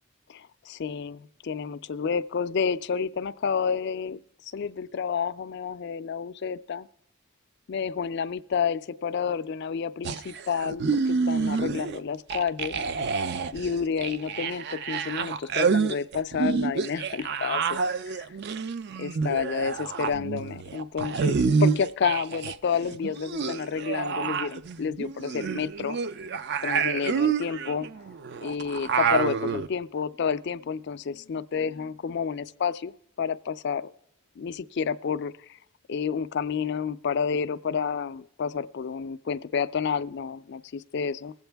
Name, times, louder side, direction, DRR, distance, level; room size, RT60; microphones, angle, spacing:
voice 1, 0.3-6.9 7.7-12.8 13.5-18.3 19.0-26.0 26.6-27.9 28.4-33.9 34.4-35.6 35.9-41.3, left 6 dB, 50° left, 13 dB, 0.4 m, -30 dB
sound 1, 10.0-12.0 12.3-22.6 22.8-29.7, right 5 dB, 50° right, 0.4 m, -28 dB
20.0 x 8.0 x 3.4 m, 0.81 s
head